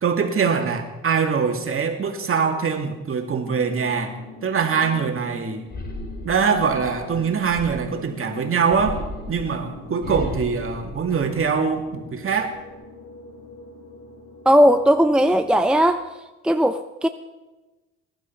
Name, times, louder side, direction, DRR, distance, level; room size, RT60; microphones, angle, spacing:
voice 1, 0.0-5.6 6.2-9.0 9.3-12.6, right 6 dB, 45° right, 4 dB, 2.5 m, -23 dB
sound 1, 3.4-15.9, left 2 dB, 90° left, 5.7 m, -43 dB
sound 2, 5.7-8.1 8.7-11.8 12.2-12.7, left 1 dB, 35° left, 3.2 m, -35 dB
voice 2, 14.5-16.1 16.4-17.1, equal, 5° right, 8 dB, 0.6 m, -17 dB
18.5 x 11.5 x 5.8 m, 1.1 s
cardioid pair, 90°, 30 cm